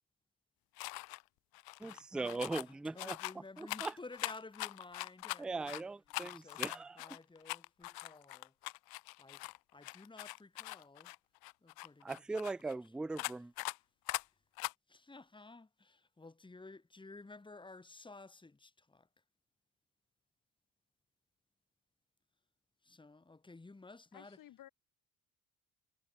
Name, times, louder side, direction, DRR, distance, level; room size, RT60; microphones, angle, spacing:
sound 1, 0.8-1.2 1.5-2.7 3.0-5.8 6.1-9.6 9.8-12.7 13.2-13.8 14.1-14.2 14.6-14.7, left 22 dB, 90° left, 0.6 m, -42 dB
voice 1, 1.8-3.2 3.6-3.9 5.4-7.2 12.0-13.5, right 3 dB, 5° right, 0.3 m, -40 dB
voice 2, 2.6-5.7 6.2-6.6 6.9-8.5 9.2-9.4 9.7-11.1 11.6-12.1 13.0-13.1 14.9-19.1 22.8-24.4, left 3 dB, 15° left, 3.1 m, -53 dB
voice 3, 24.1-24.7, left 12 dB, 65° left, 3.6 m, -55 dB
cardioid pair, 120°, 36 cm